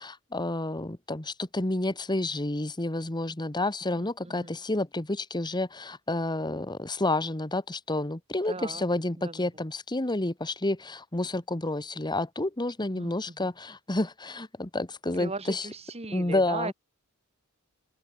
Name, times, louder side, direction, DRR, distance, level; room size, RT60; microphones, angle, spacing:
voice 1, 0.0-15.7 16.1-16.7, left 2 dB, 20° left, 1.3 m, -30 dB
voice 2, 3.9-4.6 8.5-8.9 9.2-9.5 12.9-13.5 15.1-16.7, right 3 dB, 30° right, 2.6 m, -38 dB
open air
head